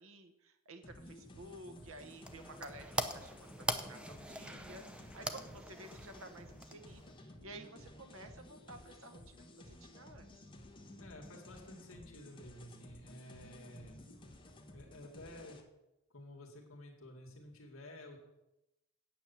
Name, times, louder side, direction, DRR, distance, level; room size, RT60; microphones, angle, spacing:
voice 1, 0.0-10.5 13.4-13.9, right 2 dB, 70° right, 7 dB, 1.0 m, -53 dB
sound 1, 0.8-15.6, left 1 dB, 25° left, 1.3 m, -55 dB
sound 2, 1.8-7.2, right 1 dB, 5° right, 0.6 m, -42 dB
voice 2, 11.0-14.0 14.7-15.6 16.1-18.2, left 1 dB, 70° left, 0 dB, 2.1 m, -52 dB
9.0 x 8.1 x 7.0 m, 0.94 s
head